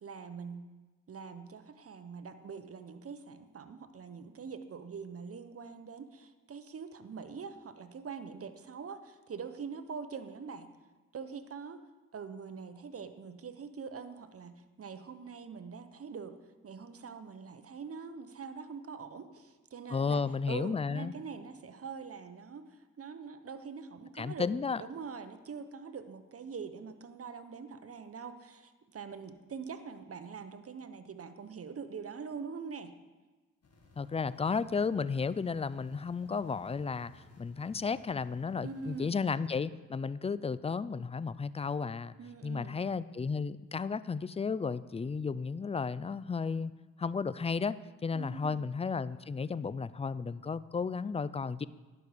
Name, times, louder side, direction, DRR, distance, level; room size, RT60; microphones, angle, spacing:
voice 1, 0.0-0.7 1.1-10.7 11.1-16.4 16.6-24.5 24.8-33.0 38.6-39.2 42.2-42.9 48.1-48.6, right 5 dB, 45° right, 10 dB, 0.9 m, -44 dB
voice 2, 19.9-21.1 24.2-24.8 34.0-42.1 42.4-46.7 47.0-47.7 48.0-51.7, left 5 dB, 20° left, 17 dB, 0.3 m, -33 dB
sound 1, 33.6-39.0, left 2 dB, 50° left, 1.8 m, -60 dB
10.5 x 6.3 x 5.1 m, 1.2 s
supercardioid pair, 50°, 32 cm